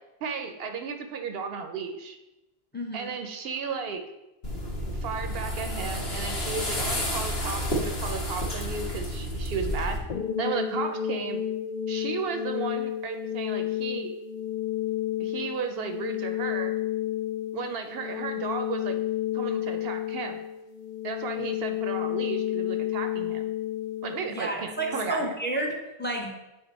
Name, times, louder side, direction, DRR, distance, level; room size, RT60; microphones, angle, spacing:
voice 1, 0.2-2.2 2.9-4.0 4.9-10.0 10.4-11.4 11.9-14.1 15.2-16.7 17.5-19.0 19.3-20.4 21.0-23.5 24.0-25.4, right 5 dB, 70° right, 7 dB, 0.8 m, -34 dB
voice 2, 2.7-3.1 24.3-26.4, right 1 dB, 10° left, 0 dB, 0.8 m, -31 dB
sound 1, 4.4-10.0, equal, 70° left, 1.4 m, -30 dB
sound 2, 10.1-25.1, left 11 dB, 55° left, 0.7 m, -31 dB
7.9 x 3.5 x 4.1 m, 0.98 s
omnidirectional pair, 1.0 m